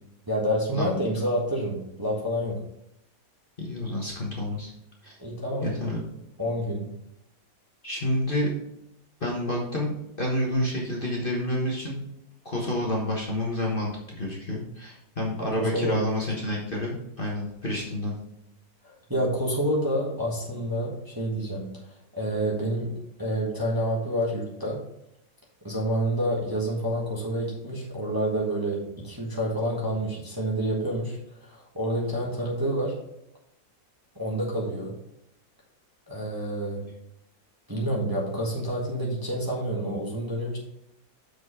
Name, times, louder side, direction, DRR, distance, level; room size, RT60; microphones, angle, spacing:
voice 1, 0.3-2.6 5.2-5.7 6.4-7.0 15.5-16.0 18.8-22.9 23.2-24.8 25.6-33.0 34.1-34.9 36.1-36.8 37.7-40.6, equal, 15° right, -3 dB, 1.3 m, -28 dB
voice 2, 3.6-4.7 5.0-5.2 5.6-6.0 7.8-8.5 9.2-12.0 12.4-18.1, left 1 dB, 35° left, -2 dB, 1.4 m, -29 dB
6.3 x 5.1 x 4.9 m, 0.80 s
omnidirectional pair, 1.8 m